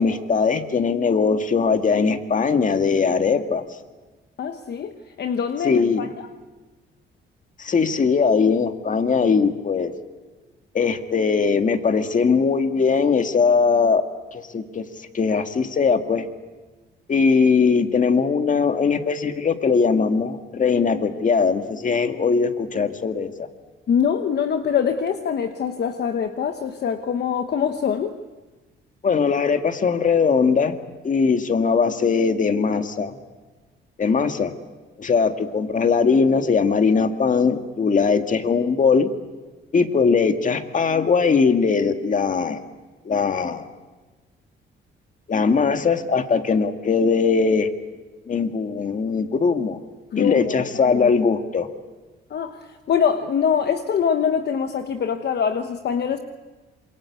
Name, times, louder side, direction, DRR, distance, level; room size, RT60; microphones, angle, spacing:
voice 1, 0.0-3.6 5.6-6.1 7.6-9.9 10.7-14.0 14.3-14.9 15.1-16.3 17.1-23.5 29.0-30.8 31.0-33.2 34.0-34.6 35.0-39.1 39.7-42.6 43.1-43.7 45.3-47.7 48.3-49.8 50.2-51.7, left 5 dB, 40° left, 7 dB, 1.9 m, -20 dB
voice 2, 4.4-6.3 23.9-28.2 50.1-51.2 52.3-52.6 52.9-56.2, left 7 dB, 55° left, 7 dB, 1.2 m, -24 dB
27.0 x 22.5 x 8.3 m, 1.3 s
cardioid pair, 90°, 20 cm